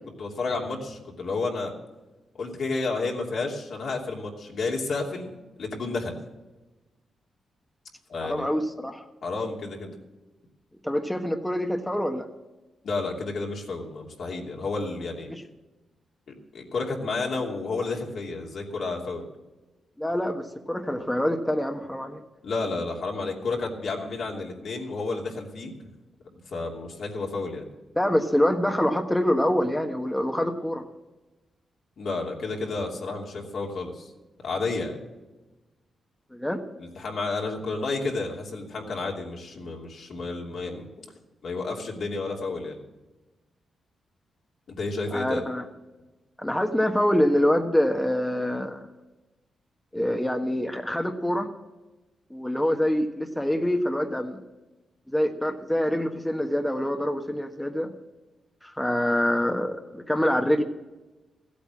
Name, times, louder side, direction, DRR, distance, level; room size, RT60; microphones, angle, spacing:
voice 1, 0.2-1.7 2.3-5.3 5.6-6.2 8.1-8.5 9.2-9.9 12.8-15.3 16.3-19.3 22.4-25.7 26.5-27.7 32.0-34.1 34.4-35.0 36.8-40.9 41.4-42.8 44.7-45.4, left 3 dB, 65° left, -1 dB, 2.9 m, -31 dB
voice 2, 8.2-9.0 10.8-12.3 15.3-15.4 20.0-22.2 28.0-30.8 36.3-36.6 45.1-45.6 46.4-48.8 49.9-51.5 52.3-54.4 55.1-57.9 58.6-60.6, left 1 dB, 10° left, 4 dB, 1.4 m, -25 dB
15.0 x 8.5 x 7.6 m, 1.1 s
cardioid pair, 60°, 0 cm